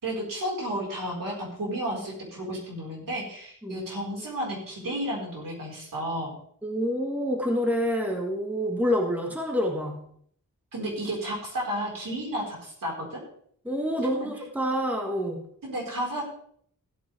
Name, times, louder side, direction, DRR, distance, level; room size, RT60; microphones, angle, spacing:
voice 1, 0.0-6.3 10.7-13.2 14.2-14.3 15.6-16.3, right 1 dB, 75° right, -3 dB, 4.9 m, -32 dB
voice 2, 6.6-10.0 13.7-15.4, equal, 5° right, 1 dB, 1.7 m, -27 dB
15.5 x 8.9 x 3.5 m, 0.63 s
wide cardioid pair, 120°, 33 cm